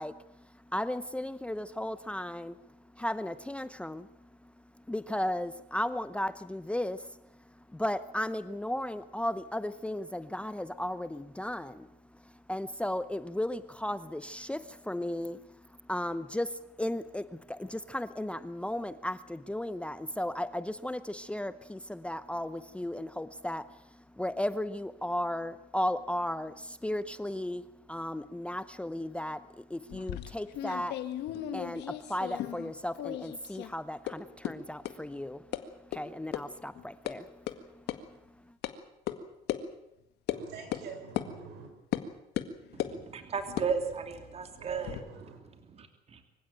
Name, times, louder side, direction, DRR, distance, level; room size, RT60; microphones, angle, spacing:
voice 1, 0.0-38.6, left 1 dB, 5° left, 14 dB, 0.8 m, -36 dB
sound 1, 29.9-32.7 33.0-33.7 34.1-34.2 34.4-34.5 34.8-34.9 35.5-35.6 35.9-36.0 36.3-36.4 36.8-37.1 37.5-37.6 37.9-38.0 38.6-38.7 39.1-39.2 39.5-39.6 40.3-40.4 40.7-40.9 41.2-41.3 41.9-42.1 42.4-43.0 43.5-45.0, left 13 dB, 80° left, 1.9 m, -36 dB
voice 2, 40.3-41.7 44.6-45.4, right 6 dB, 80° right, 6 dB, 6.6 m, -45 dB
voice 3, 42.7-45.0 45.5-46.2, right 5 dB, 40° right, 7 dB, 3.0 m, -35 dB
25.0 x 16.0 x 9.1 m, 0.85 s
cardioid pair, 110°, 17 cm